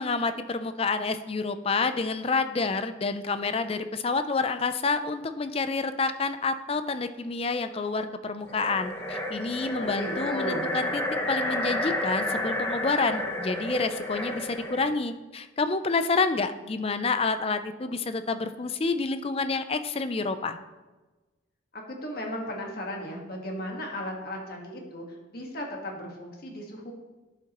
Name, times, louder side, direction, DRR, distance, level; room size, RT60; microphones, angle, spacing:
voice 1, 0.0-11.0 11.3-20.6, left 4 dB, 30° left, 10 dB, 0.4 m, -28 dB
sound 1, 8.5-14.9, left 1 dB, 15° left, 0.8 m, -31 dB
voice 2, 9.8-10.7 21.7-26.9, equal, 50° left, 0 dB, 1.5 m, -36 dB
11.5 x 7.1 x 3.0 m, 1.2 s
head